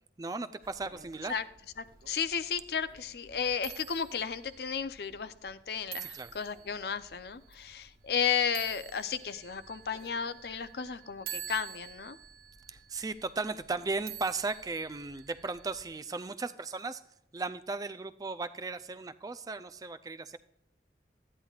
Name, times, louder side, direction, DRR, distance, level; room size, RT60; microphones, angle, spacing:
voice 1, 0.2-1.4 6.0-6.3 12.7-17.0 17.3-20.4, right 3 dB, 20° right, 13 dB, 0.3 m, -36 dB
sound 1, 0.6-15.9, right 9 dB, 55° right, 1.2 m, -49 dB
voice 2, 1.8-12.2, left 7 dB, 65° left, 13 dB, 0.5 m, -33 dB
13.0 x 10.0 x 2.4 m, 0.76 s
head